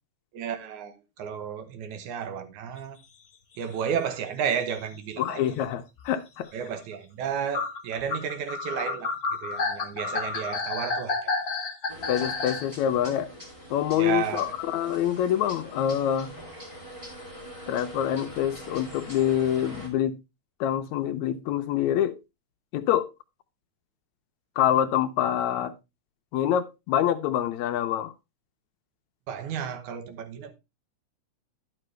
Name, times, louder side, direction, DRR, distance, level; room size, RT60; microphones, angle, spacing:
voice 1, 0.3-3.0 3.6-5.4 6.5-11.3 14.0-14.5 29.3-30.5, right 7 dB, 80° right, 2.5 m, -32 dB
sound 1, 3.6-3.7 4.0-4.2 4.9-5.0 5.2-5.3 6.0-6.2 6.7-6.8 7.5-12.7, left 4 dB, 45° left, 1.3 m, -30 dB
voice 2, 5.2-6.5 12.1-13.3 13.7-16.3 17.7-20.2 20.6-22.2 22.7-23.1 24.6-25.7 26.3-28.1, left 10 dB, 75° left, 2.0 m, -26 dB
sound 2, 11.9-19.9, equal, 10° right, 2.5 m, -43 dB
11.0 x 6.9 x 3.2 m
omnidirectional pair, 3.4 m